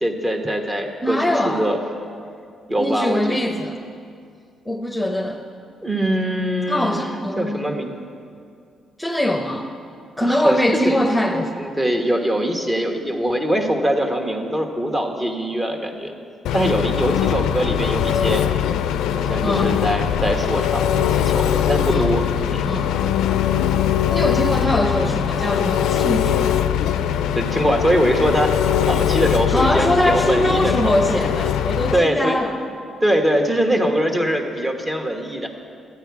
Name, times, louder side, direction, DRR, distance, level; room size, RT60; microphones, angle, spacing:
voice 1, 0.0-1.8 2.7-3.4 5.8-7.0 7.4-8.0 10.2-10.6 10.8-11.0 11.5-16.1 16.5-18.5 19.2-22.8 27.3-28.6 28.9-31.2 31.9-32.4 33.0-35.5, equal, 25° right, 3 dB, 1.3 m, -22 dB
voice 2, 1.0-1.6 2.8-3.8 4.7-5.4 6.7-7.7 9.0-9.7 10.2-11.5 19.4-19.8 21.9-22.1 22.6-22.9 24.1-26.6 29.5-32.5, left 1 dB, 5° left, 2 dB, 0.8 m, -22 dB
Engine, 16.5-32.0, left 9 dB, 85° left, 0.4 m, -21 dB
12.5 x 9.5 x 4.8 m, 2.3 s
cardioid pair, 80°, 0 cm